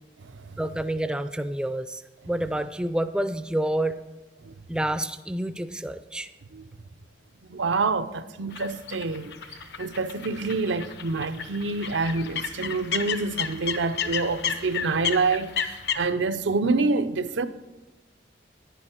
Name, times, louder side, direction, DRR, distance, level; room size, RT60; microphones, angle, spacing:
voice 1, 0.6-4.0 4.7-6.3, right 1 dB, 5° right, 0.3 m, -28 dB
voice 2, 7.5-9.3 9.8-17.5, right 3 dB, 85° right, 0.6 m, -27 dB
sound 1, 8.5-16.0, left 7 dB, 65° left, 0.7 m, -32 dB
10.5 x 10.0 x 4.5 m
head